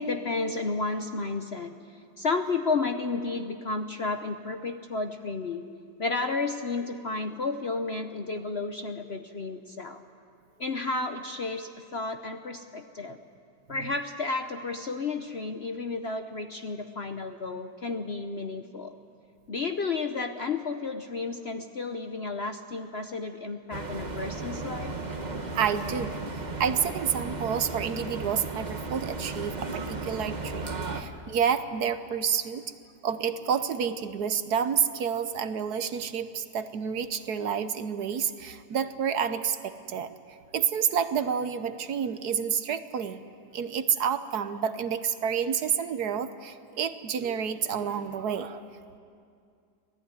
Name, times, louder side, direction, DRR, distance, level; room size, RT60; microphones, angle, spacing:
voice 1, 0.0-5.6 6.0-10.0 10.6-13.2 13.7-18.9 19.5-25.0 48.5-48.6, left 3 dB, 45° left, 7 dB, 0.9 m, -32 dB
sound 1, 23.7-31.0, right 3 dB, 25° right, 1.2 m, -35 dB
voice 2, 25.5-26.2 26.6-32.6 33.0-43.2 43.5-48.6, right 7 dB, 65° right, 11 dB, 1.4 m, -29 dB
25.5 x 17.5 x 9.7 m, 2.3 s
omnidirectional pair, 1.9 m